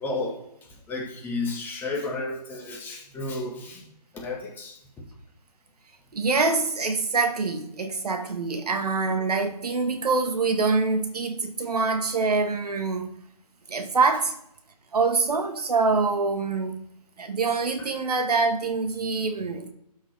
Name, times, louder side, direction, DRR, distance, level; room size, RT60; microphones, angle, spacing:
voice 1, 0.0-5.0 17.8-17.9, left 3 dB, 10° left, 1.5 m, -33 dB
voice 2, 6.1-13.1 13.7-14.3 14.9-16.8 17.2-19.7, right 4 dB, 65° right, 1.4 m, -25 dB
12.5 x 6.3 x 3.4 m
figure-of-eight pair, 150°, 21 cm